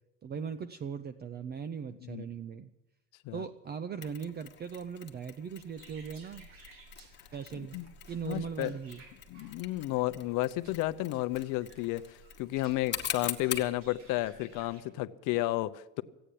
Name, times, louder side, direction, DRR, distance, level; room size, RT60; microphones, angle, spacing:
voice 1, 0.2-2.7 3.3-6.5 7.3-7.8 8.1-9.0, right 7 dB, 30° right, 12 dB, 0.6 m, -39 dB
Mechanisms, 4.0-13.8, left 9 dB, 30° left, 1.3 m, -43 dB
sound 1, 5.8-14.8, right 2 dB, 60° right, 3.2 m, -56 dB
voice 2, 7.5-7.8 8.2-8.7 9.3-16.0, left 17 dB, 60° left, 13 dB, 0.8 m, -32 dB
15.5 x 9.1 x 8.5 m, 0.96 s
cardioid pair, 125°, 36 cm